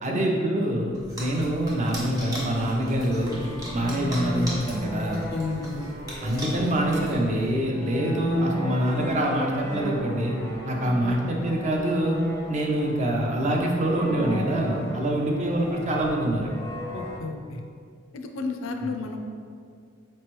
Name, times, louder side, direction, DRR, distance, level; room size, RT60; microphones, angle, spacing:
voice 1, 0.0-3.4 3.7-5.3 6.2-10.4 10.6-12.2 12.5-16.5 18.8-18.9, right 1 dB, 35° right, 0 dB, 0.5 m, -25 dB
sound 1, 0.9-7.5, equal, 20° right, 0.9 m, -39 dB
sound 2, 3.1-17.2, equal, 15° left, 0.5 m, -34 dB
voice 2, 5.3-5.9 16.9-17.6 18.1-19.2, left 3 dB, 90° left, 5 dB, 0.4 m, -32 dB
4.3 x 3.1 x 3.0 m, 2.2 s
head